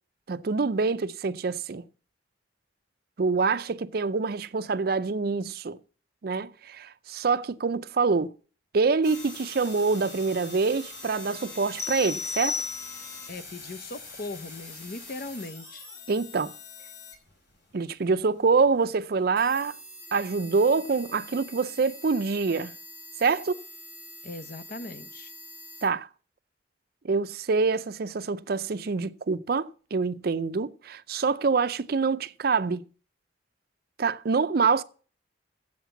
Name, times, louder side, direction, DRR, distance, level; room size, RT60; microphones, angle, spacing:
voice 1, 0.3-1.8 3.2-5.8 6.2-8.3 8.7-12.6 16.1-16.5 17.7-19.8 20.1-22.7 23.2-23.6 25.8-26.1 27.0-32.8 34.0-34.8, right 4 dB, 55° right, 0.5 m, -26 dB
sound 1, 9.0-25.9, left 2 dB, 70° left, 4.7 m, -44 dB
sound 2, 11.8-13.3, left 5 dB, 15° left, 0.4 m, -33 dB
voice 2, 13.3-15.9 24.2-25.3, left 2 dB, 50° left, 0.7 m, -39 dB
7.8 x 7.3 x 7.1 m
head